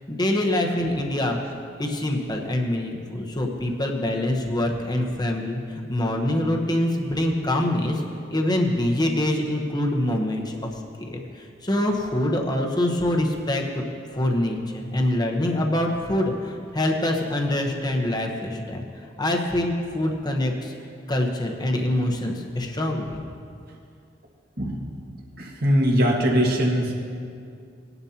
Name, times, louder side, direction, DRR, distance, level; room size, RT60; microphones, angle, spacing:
voice 1, 0.1-1.4 1.8-8.0 8.3-10.7 11.0-11.2 11.6-13.8 14.1-18.8 19.2-20.7 21.1-23.2, left 1 dB, 25° left, 2 dB, 1.1 m, -25 dB
voice 2, 25.4-26.9, equal, 55° right, -1 dB, 1.8 m, -21 dB
19.5 x 11.0 x 2.9 m, 2.3 s
head